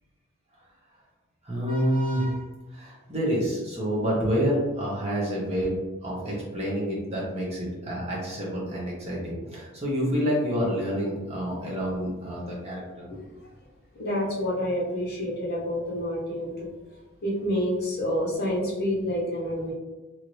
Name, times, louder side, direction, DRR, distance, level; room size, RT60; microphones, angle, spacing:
voice 1, 1.4-2.4 2.7-5.7 6.0-13.1, equal, 30° right, -5 dB, 0.8 m, -28 dB
voice 2, 13.9-16.5 17.2-19.7, equal, 45° left, -4 dB, 0.8 m, -28 dB
2.9 x 2.6 x 3.1 m, 1.1 s
head